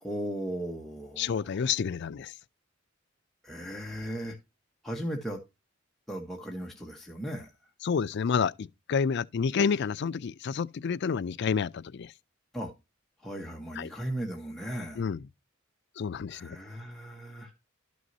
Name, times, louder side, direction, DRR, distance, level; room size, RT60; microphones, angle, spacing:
voice 1, 0.0-1.7 3.4-4.4 4.8-5.4 6.1-7.5 12.5-12.7 13.2-15.0 16.3-17.5, right 1 dB, ahead, 1.1 m, -37 dB
voice 2, 1.2-2.3 7.8-12.1 13.8-13.9 15.0-15.2 16.0-16.6, left 6 dB, 60° left, 0.4 m, -29 dB
12.0 x 6.3 x 2.7 m
head